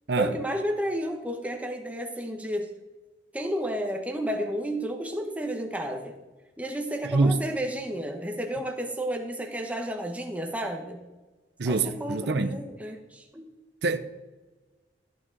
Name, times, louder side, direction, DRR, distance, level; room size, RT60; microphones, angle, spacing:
voice 1, 0.2-2.7 3.3-6.2 6.6-11.0 11.6-13.5, equal, 10° right, 1.2 m, -32 dB
voice 2, 7.1-7.4 11.6-12.6 13.8-14.0, right 3 dB, 65° right, 0.7 m, -25 dB
13.5 x 8.9 x 4.0 m
head